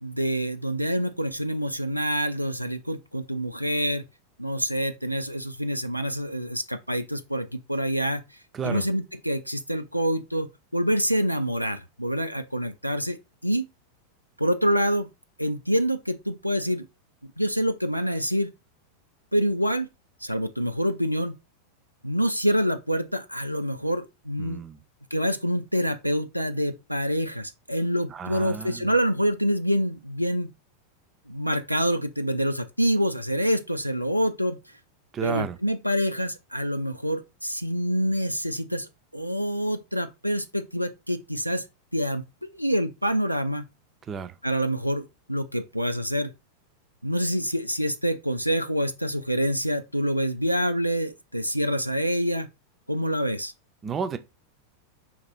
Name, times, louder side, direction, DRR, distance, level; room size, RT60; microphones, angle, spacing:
voice 1, 0.0-4.0 4.4-8.2 8.6-13.7 14.4-15.1 15.4-16.9 17.2-18.5 19.3-19.9 20.2-21.4 22.0-24.6 25.1-30.5 31.3-34.6 35.2-41.7 41.9-43.6 44.4-46.3 47.0-52.5 52.9-53.5, equal, 90° right, 0.3 m, -26 dB
voice 2, 24.4-24.8 28.1-28.9 35.1-35.6 44.1-44.4 53.8-54.2, right 6 dB, 25° right, 0.5 m, -32 dB
4.2 x 2.9 x 3.9 m
figure-of-eight pair, 90°, 0 cm